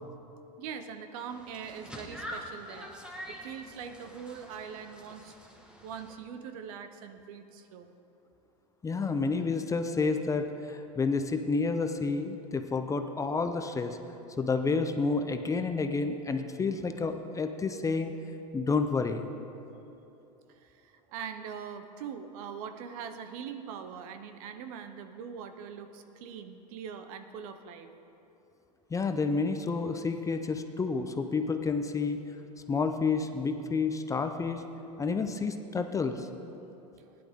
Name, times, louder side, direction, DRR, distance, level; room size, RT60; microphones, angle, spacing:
voice 1, 0.6-2.9 3.3-5.3 5.8-7.9 20.5-27.9, right 7 dB, 60° right, 8 dB, 0.9 m, -42 dB
sound 1, 1.3-6.2, equal, 5° right, 1.6 m, -45 dB
voice 2, 8.8-14.0 14.4-18.1 18.5-19.3 28.9-32.2 32.7-34.6 35.0-36.3, left 4 dB, 15° left, 7 dB, 0.6 m, -30 dB
16.0 x 10.5 x 3.7 m, 2.9 s
hypercardioid pair, 95°, 20 cm